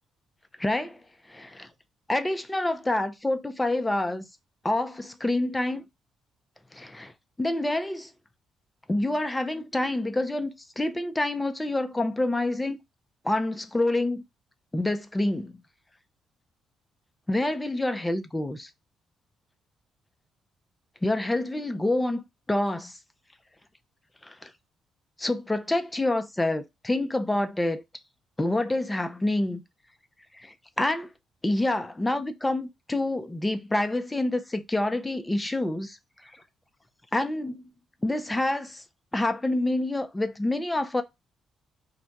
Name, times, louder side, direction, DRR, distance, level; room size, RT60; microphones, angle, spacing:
voice 1, 0.6-1.0 1.3-1.7 2.1-4.3 4.6-5.8 6.7-7.1 7.4-8.1 8.9-12.8 13.2-14.2 14.7-15.6 17.3-18.7 21.0-22.9 24.2-24.5 25.2-27.8 28.4-29.6 30.4-31.1 31.4-36.0 36.2-36.3 37.1-37.7 38.0-38.8 39.1-41.0, left 1 dB, 15° left, 0.5 m, -27 dB
2.4 x 2.2 x 3.9 m
cardioid pair, 90°, 0 cm